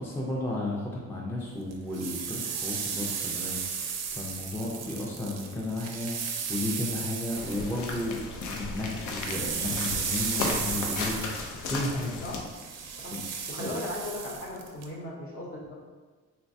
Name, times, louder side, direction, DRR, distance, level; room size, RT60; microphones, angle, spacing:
voice 1, 0.0-12.2 13.1-13.2 13.6-13.7, left 1 dB, 10° left, -4 dB, 0.4 m, -34 dB
sound 1, 1.7-8.5 8.8-14.9, right 6 dB, 60° right, 0.4 m, -35 dB
sound 2, 7.3-12.4, left 3 dB, 80° left, 0.5 m, -35 dB
voice 2, 13.5-15.7, left 1 dB, 45° left, -3 dB, 0.9 m, -37 dB
3.2 x 2.1 x 2.6 m, 1.4 s
cardioid pair, 90°, 30 cm